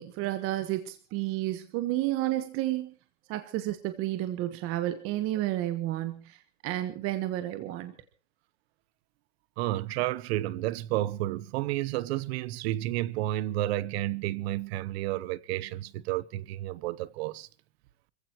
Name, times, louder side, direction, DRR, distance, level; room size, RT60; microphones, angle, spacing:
voice 1, 0.0-2.9 3.3-6.4 6.6-7.9, right 15 dB, 35° right, 1.3 m, -31 dB
voice 2, 9.6-17.5, right 15 dB, 55° right, 0.9 m, -31 dB
26.0 x 15.5 x 3.0 m
supercardioid pair, 155°, 38 cm